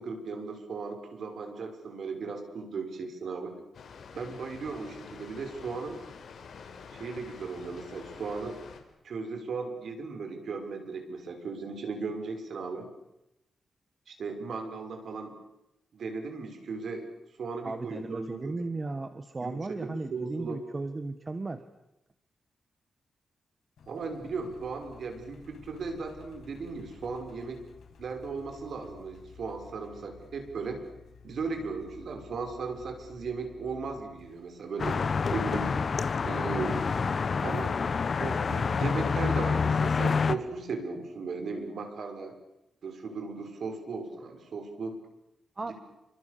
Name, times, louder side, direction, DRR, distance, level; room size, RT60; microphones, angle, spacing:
voice 1, 0.0-3.6 4.1-6.0 6.9-8.6 9.0-12.9 14.1-15.3 15.9-17.1 17.4-18.6 19.4-20.6 23.9-27.6 28.0-30.8 31.2-35.0 35.3-35.7 36.2-36.9 37.4-37.8 38.2-42.3 42.8-44.9 45.7-45.8, right 4 dB, 70° right, 6 dB, 6.2 m, -36 dB
Water, 3.7-8.8, left 6 dB, 70° left, 5.0 m, -47 dB
voice 2, 17.6-21.6 45.6-45.7, right 3 dB, 30° right, 10 dB, 1.7 m, -35 dB
Engine, 23.8-35.4, left 6 dB, 85° left, 6.0 m, -54 dB
sound 1, 34.8-40.4, left 5 dB, 45° left, 1.3 m, -27 dB
29.0 x 26.0 x 7.0 m, 0.90 s
wide cardioid pair, 115°, 0 cm